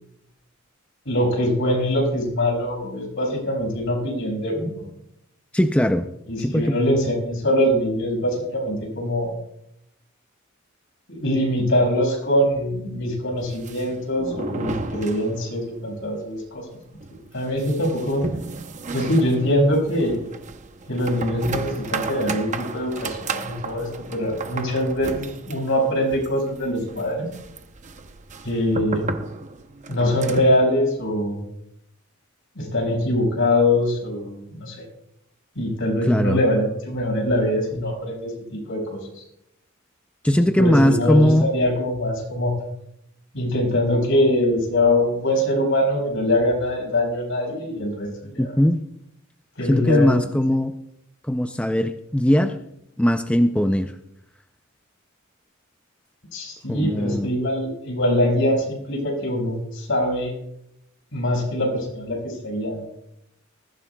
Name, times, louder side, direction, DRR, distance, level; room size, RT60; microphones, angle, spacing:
voice 1, 1.1-4.8 6.3-9.3 11.1-16.6 17.1-18.2 18.9-20.2 20.9-27.3 28.4-29.1 29.9-31.4 32.6-34.8 35.6-39.2 40.3-42.5 43.3-48.6 49.6-50.4 56.3-60.3 61.1-62.8, left 1 dB, 65° left, 0 dB, 5.6 m, -23 dB
voice 2, 5.5-6.1 6.4-6.8 36.1-36.4 40.2-41.5 48.4-48.8 49.6-50.8 51.2-52.5 53.0-53.9 56.7-57.3, equal, 5° left, 6 dB, 0.5 m, -19 dB
sound 1, 13.4-15.8 16.0-16.1 16.5-16.6 17.0-30.6, right 3 dB, 35° right, 0.8 m, -34 dB
20.5 x 15.0 x 2.3 m, 0.78 s
head